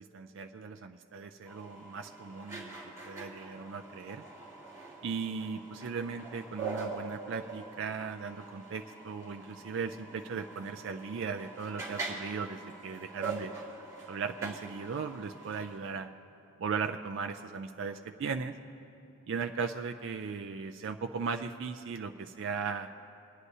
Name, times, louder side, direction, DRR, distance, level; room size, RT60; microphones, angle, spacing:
voice 1, 0.0-4.2 5.0-13.5 14.0-16.1 16.6-18.5 19.3-22.9, right 5 dB, 55° right, 5 dB, 0.3 m, -37 dB
sound 1, 1.5-15.8, right 3 dB, 15° right, 2.0 m, -44 dB
26.0 x 9.6 x 2.7 m, 2.7 s
head